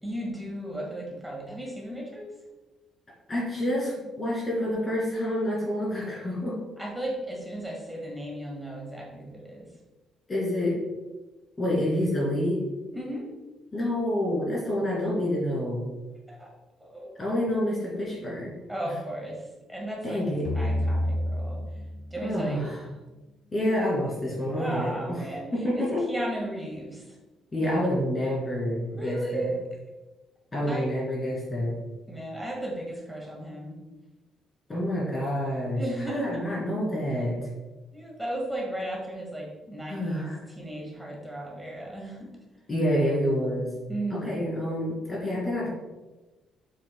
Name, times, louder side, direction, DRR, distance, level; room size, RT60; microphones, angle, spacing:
voice 1, 0.0-2.3 6.8-9.7 12.9-13.3 16.3-16.5 16.8-17.1 18.7-19.4 19.7-21.6 22.1-22.6 24.5-27.0 28.9-29.7 30.7-30.9 32.1-33.8 35.8-36.5 37.9-40.3 40.6-42.3 43.9-44.5, right 1 dB, 5° right, -2 dB, 1.7 m, -35 dB
voice 2, 3.3-6.6 10.3-10.8 11.6-12.6 13.7-15.8 17.2-18.5 20.0-20.5 22.2-22.8 23.5-25.3 25.5-26.0 27.5-29.5 30.5-31.7 34.7-37.4 39.9-40.4 42.7-43.7 44.1-45.7, equal, 20° left, -5 dB, 2.4 m, -28 dB
sound 1, 20.4-23.4, left 1 dB, 60° left, 1.3 m, -30 dB
8.3 x 7.7 x 2.2 m, 1.1 s
cardioid pair, 165°, 0 cm